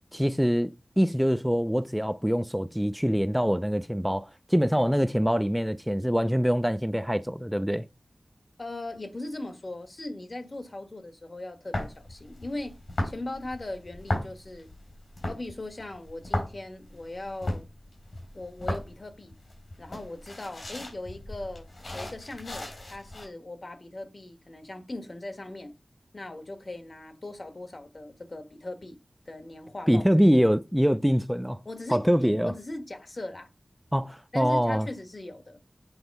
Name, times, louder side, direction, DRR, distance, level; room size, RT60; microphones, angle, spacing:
voice 1, 0.1-7.8 29.9-31.6 31.9-32.5 33.9-34.9, equal, 5° right, 0.4 m, -24 dB
voice 2, 8.6-12.8 13.0-14.7 15.2-17.7 18.3-19.3 19.8-21.7 21.9-25.7 26.1-29.0 29.2-30.1 31.6-33.5 34.3-35.6, left 2 dB, 50° left, 1.5 m, -39 dB
sound 1, 11.7-23.3, left 1 dB, 70° left, 4.0 m, -36 dB
8.0 x 4.4 x 5.3 m
wide cardioid pair, 60°, 0 cm